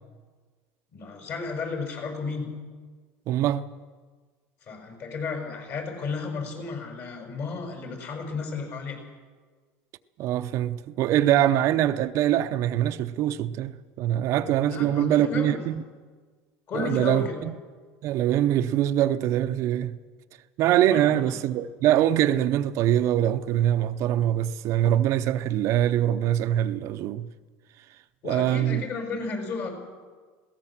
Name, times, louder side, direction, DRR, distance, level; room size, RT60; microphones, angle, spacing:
voice 1, 0.9-2.5 4.6-9.0 14.7-15.6 16.7-17.4 20.8-21.3 28.2-29.7, left 4 dB, 50° left, 5.9 m, -33 dB
voice 2, 3.3-3.7 10.2-13.7 14.0-15.8 16.7-17.5 18.0-20.0 20.6-27.3 28.2-28.8, right 12 dB, 55° right, 0.7 m, -23 dB
21.0 x 17.0 x 7.3 m
supercardioid pair, 125°, 6 cm